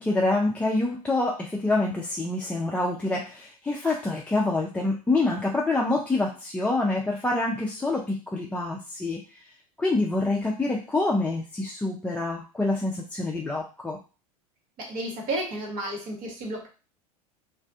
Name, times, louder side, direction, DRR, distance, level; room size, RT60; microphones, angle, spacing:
voice 1, 0.0-9.2 9.8-14.0, left 2 dB, 5° left, -3 dB, 0.4 m, -26 dB
voice 2, 14.8-16.7, right 1 dB, 45° right, -1 dB, 1.1 m, -32 dB
2.4 x 2.2 x 2.5 m, 0.33 s
hypercardioid pair, 90°, 20 cm